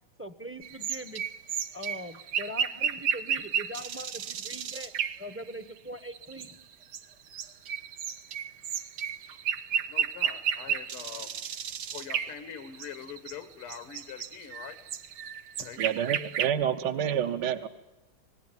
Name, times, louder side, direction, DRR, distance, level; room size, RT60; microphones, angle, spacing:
voice 1, 0.2-1.2 1.7-6.6, equal, 10° right, 11 dB, 0.7 m, -41 dB
sound 1, 0.6-5.8 6.1-13.3 13.6-16.5, right 8 dB, 80° right, 2.0 m, -33 dB
voice 2, 9.7-11.4 11.9-14.8 15.5-15.8, left 8 dB, 90° left, 9 dB, 2.5 m, -43 dB
voice 3, 15.8-17.7, right 9 dB, 60° right, 6 dB, 1.5 m, -28 dB
27.5 x 19.0 x 9.3 m, 1.0 s
omnidirectional pair, 2.4 m